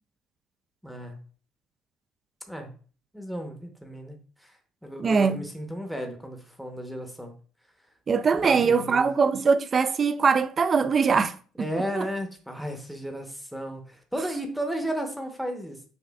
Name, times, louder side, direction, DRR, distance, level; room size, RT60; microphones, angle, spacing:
voice 1, 0.8-1.2 2.5-2.7 3.1-7.3 8.4-9.1 11.6-15.9, equal, ahead, 0.8 m, -34 dB
voice 2, 5.0-5.4 8.1-12.1, right 5 dB, 40° right, 0.3 m, -22 dB
6.1 x 2.5 x 2.2 m
supercardioid pair, 80°, 0 cm